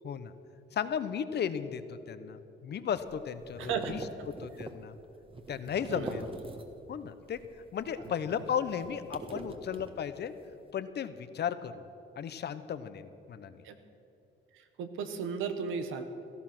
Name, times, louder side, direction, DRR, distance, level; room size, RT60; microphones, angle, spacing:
voice 1, 0.7-4.0 4.4-5.0 5.5-6.3 6.9-7.4 7.7-10.3 10.7-11.8 12.2-13.6, left 8 dB, 55° left, 12 dB, 1.0 m, -35 dB
sound 1, 3.0-7.0 7.3-10.4, right 2 dB, 25° right, 1.5 m, -44 dB
voice 2, 3.6-3.9 4.2-4.3 5.9-6.3 13.6-13.8 14.5-16.0, right 6 dB, 90° right, 8 dB, 1.4 m, -35 dB
17.0 x 14.0 x 6.1 m, 2.8 s
cardioid pair, 90°, 20 cm